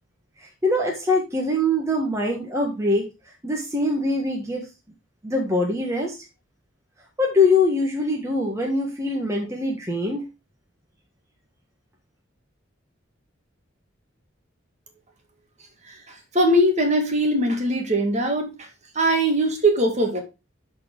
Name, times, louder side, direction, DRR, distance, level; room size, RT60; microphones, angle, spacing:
voice 1, 0.6-3.1 3.4-4.7 5.2-6.2 7.2-10.2, left 2 dB, 15° right, 1.4 m, -23 dB
voice 2, 16.3-18.7 19.0-20.2, right 1 dB, 35° right, 1.9 m, -21 dB
12.0 x 4.4 x 3.7 m
head